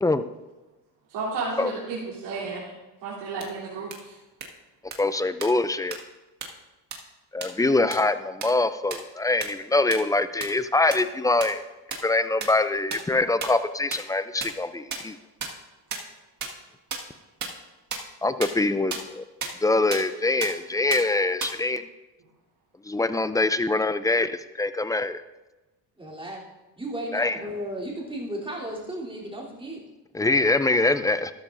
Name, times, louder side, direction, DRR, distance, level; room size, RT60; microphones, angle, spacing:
voice 1, 1.1-2.6 3.0-4.2, right 4 dB, 70° right, -8 dB, 3.4 m, -32 dB
sound 1, 3.4-3.5 3.9-4.0 4.4-4.5 4.9-5.0 5.4-5.5 5.9-6.0 6.4-6.5 6.9-7.0 7.4-7.5 7.9-8.0 8.4-8.5 8.9-9.0 9.4-9.5 9.9-10.0 10.4-10.5 10.9-11.0 11.4-11.5 11.9-12.0 12.4-12.5 12.9-13.0 13.4-13.5 13.9-14.0 14.4-14.5 14.9-15.0 15.4-15.5 15.9-16.0 16.4-16.5 16.9-17.0 17.4-17.5 17.9-18.0 18.4-18.5 18.9-19.0 19.4-19.5 19.9-20.0 20.4-20.5 20.9-21.0 21.4-21.5, right 6 dB, 45° right, 1.8 m, -30 dB
voice 2, 5.0-6.0 7.3-11.6 12.0-15.2 18.2-19.2 19.6-21.9 22.9-25.2 27.1-27.4 30.1-31.3, left 2 dB, 10° left, 12 dB, 0.3 m, -24 dB
voice 3, 26.0-26.4 26.8-29.8, right 1 dB, 10° right, -4 dB, 3.2 m, -34 dB
13.0 x 12.5 x 2.6 m, 1.1 s
cardioid pair, 105°, 41 cm